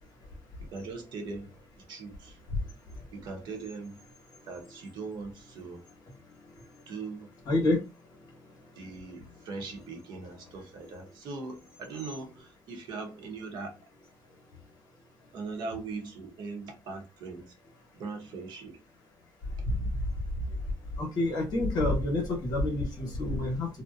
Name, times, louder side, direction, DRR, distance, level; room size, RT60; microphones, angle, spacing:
voice 1, 0.7-1.5 1.9-2.4 3.1-4.0 4.5-5.8 6.9-7.3 8.8-13.7 15.3-17.4 18.0-18.8, right 4 dB, 75° right, 0.8 m, -40 dB
voice 2, 7.5-7.8 19.7-19.8 21.0-23.7, left 2 dB, 60° left, 1.1 m, -27 dB
2.7 x 2.1 x 2.3 m
cardioid pair, 130°, 8 cm